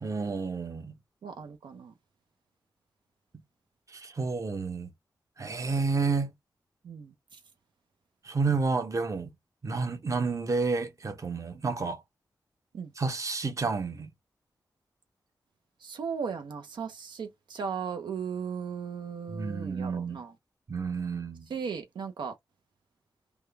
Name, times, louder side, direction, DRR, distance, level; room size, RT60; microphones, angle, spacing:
voice 1, 0.0-1.0 3.9-4.9 5.4-6.3 8.2-9.3 9.6-12.0 13.0-14.1 19.3-20.2 20.7-21.5, right 4 dB, 45° right, 0.9 m, -30 dB
voice 2, 1.2-1.9 6.8-7.4 12.7-12.9 15.8-20.3 21.5-22.3, right 6 dB, 80° right, 0.6 m, -37 dB
3.5 x 2.2 x 3.3 m
cardioid pair, 65°, 8 cm